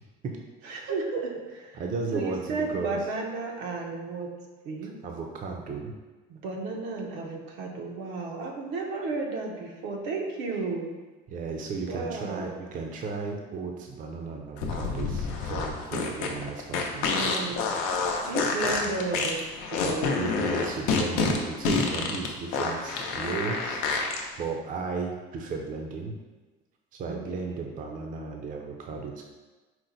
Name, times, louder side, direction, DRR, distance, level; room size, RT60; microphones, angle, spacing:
voice 1, 0.6-1.8 2.1-4.3 4.6-4.9 6.3-10.9 11.9-12.5 17.0-17.6 18.2-19.4 19.7-20.2 27.1-27.2 27.5-27.6, right 3 dB, 80° right, 1 dB, 0.7 m, -33 dB
voice 2, 1.7-3.0 4.8-5.9 11.3-17.4 18.6-19.0 20.2-24.1 24.4-26.2 26.9-29.2, right 4 dB, 40° right, 2 dB, 0.5 m, -35 dB
sound 1, 14.6-24.2, left 4 dB, 85° left, 0.6 m, -28 dB
4.4 x 2.1 x 3.9 m, 1.2 s
cardioid pair, 115°, 21 cm